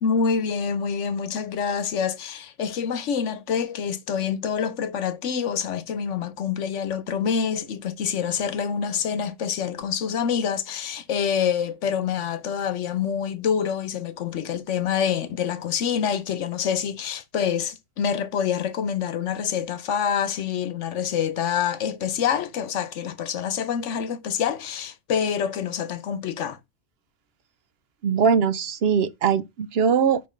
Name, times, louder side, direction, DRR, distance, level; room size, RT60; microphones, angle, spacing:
voice 1, 0.0-26.6, left 7 dB, 85° left, 1.1 m, -26 dB
voice 2, 28.0-30.2, right 6 dB, 65° right, 0.8 m, -21 dB
5.2 x 4.9 x 4.9 m
omnidirectional pair, 1.2 m